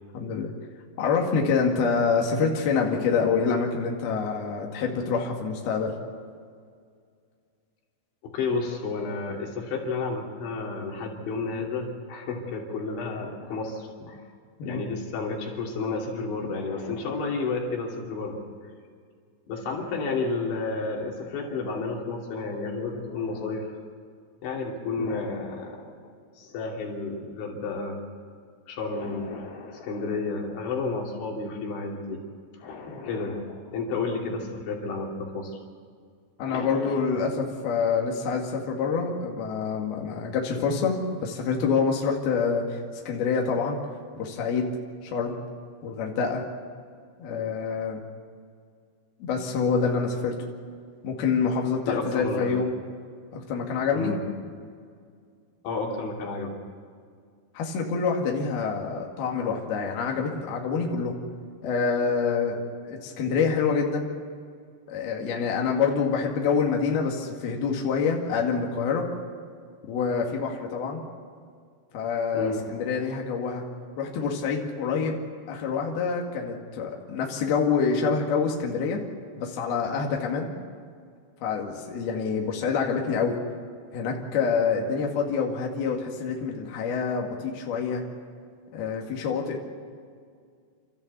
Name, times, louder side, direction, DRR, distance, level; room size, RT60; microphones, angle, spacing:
voice 1, 0.1-0.5 1.0-5.9 14.6-14.8 25.0-25.1 36.4-43.8 44.2-44.7 45.0-45.4 45.8-46.4 47.2-48.0 49.2-50.4 51.0-52.8 53.3-54.1 57.5-61.2 61.6-64.1 64.9-69.1 69.8-71.0 71.9-73.6 74.0-75.2 75.5-79.0 79.4-80.5 81.4-83.4 83.9-88.0 88.7-89.6, left 5 dB, 60° left, 0 dB, 3.8 m, -26 dB
voice 2, 8.2-14.2 14.7-18.4 19.5-23.8 24.4-25.9 26.4-28.0 28.7-32.2 32.6-35.6 36.5-37.1 51.9-52.6 53.9-54.2 55.6-56.6 72.3-72.9, left 3 dB, 85° left, -1 dB, 5.3 m, -31 dB
29.0 x 14.0 x 8.3 m, 2.1 s
omnidirectional pair, 5.1 m